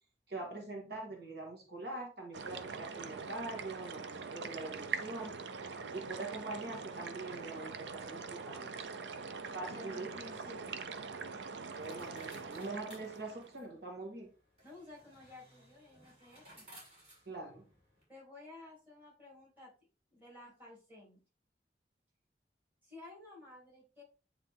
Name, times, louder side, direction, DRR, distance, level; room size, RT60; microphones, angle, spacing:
voice 1, 0.3-5.4 5.9-8.9 9.5-10.1 11.8-14.3 17.3-17.7, right 2 dB, 65° right, 0 dB, 1.9 m, -44 dB
sound 1, 2.3-13.6, right 5 dB, 90° right, 0.6 m, -43 dB
voice 2, 9.7-10.8 14.6-16.7 18.1-19.7 20.1-21.2 22.8-24.0, left 2 dB, 10° right, -5 dB, 3.5 m, -53 dB
sound 2, 10.4-18.0, equal, 35° right, 3.7 m, -60 dB
9.2 x 3.3 x 3.6 m, 0.34 s
head